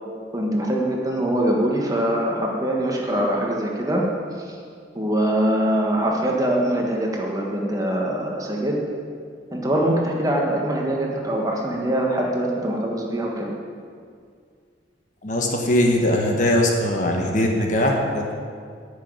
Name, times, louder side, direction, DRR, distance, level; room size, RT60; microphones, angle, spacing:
voice 1, 0.3-4.0 4.4-4.6 4.9-8.8 9.5-13.5, right 1 dB, 20° right, -1 dB, 1.5 m, -23 dB
voice 2, 15.2-18.3, left 1 dB, 40° left, 1 dB, 1.3 m, -21 dB
10.0 x 6.3 x 8.9 m, 2.1 s
head